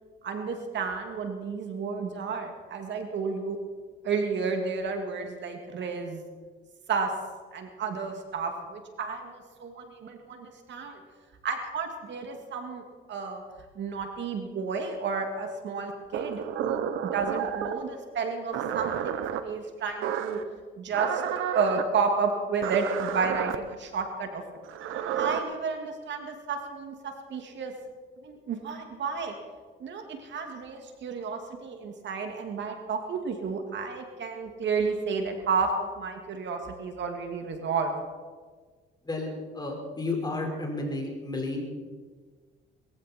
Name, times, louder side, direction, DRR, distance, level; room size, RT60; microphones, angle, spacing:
voice 1, 0.2-3.6 4.0-6.2 6.9-7.1 7.5-11.0 11.4-12.8 13.1-13.4 13.8-20.4 20.8-21.2 21.5-24.4 25.2-27.7 28.2-29.3 29.8-37.9, right 5 dB, 65° right, 4 dB, 2.3 m, -31 dB
sound 1, 16.1-17.8 18.5-19.4 20.0-20.4 20.9-21.9 22.6-23.6 24.6-25.4, right 9 dB, 85° right, 1.1 m, -31 dB
voice 2, 39.0-41.6, left 2 dB, 20° left, 1 dB, 4.8 m, -32 dB
21.0 x 15.0 x 4.4 m, 1.5 s
cardioid pair, 90°, 20 cm